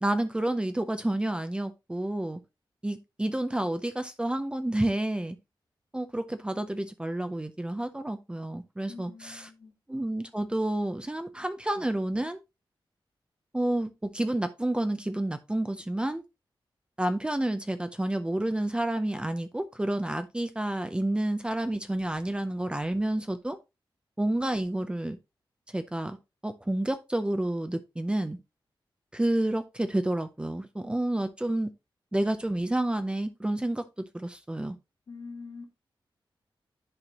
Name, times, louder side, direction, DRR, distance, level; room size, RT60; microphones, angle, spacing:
voice 1, 0.0-2.4 2.8-5.4 5.9-9.5 9.9-12.4 13.5-16.2 17.0-23.6 24.2-25.2 25.7-26.2 26.4-28.4 29.1-31.7 32.1-33.8 34.1-34.8, right 1 dB, 10° right, 0.5 m, -29 dB
voice 2, 8.9-9.7 35.1-35.7, left 4 dB, 60° left, 2.1 m, -44 dB
11.0 x 4.4 x 2.9 m
wide cardioid pair, 135°, 9 cm